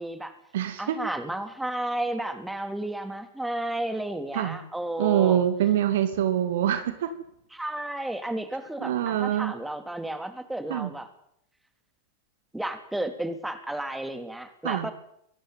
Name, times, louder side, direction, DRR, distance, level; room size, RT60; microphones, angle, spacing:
voice 1, 0.0-0.3 0.8-5.4 7.5-11.1 12.5-14.9, right 1 dB, 5° right, 9 dB, 2.9 m, -32 dB
voice 2, 0.5-1.0 4.3-4.6 5.0-7.1 8.8-9.5 10.7-10.9 14.6-14.9, right 11 dB, 55° right, 10 dB, 2.5 m, -24 dB
24.5 x 14.0 x 9.5 m, 0.72 s
figure-of-eight pair, 90°, 0 cm